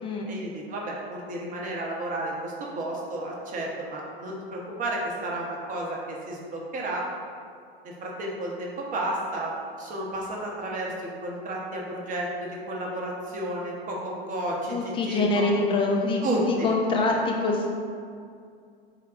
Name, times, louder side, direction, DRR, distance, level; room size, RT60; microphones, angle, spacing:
voice 1, 0.3-7.0 7.8-9.5 9.8-15.6 16.2-16.7, right 1 dB, 25° right, -2 dB, 0.8 m, -32 dB
voice 2, 14.7-17.7, left 3 dB, 15° left, 0 dB, 0.5 m, -25 dB
4.7 x 2.2 x 3.6 m, 2.3 s
hypercardioid pair, 100°, 31 cm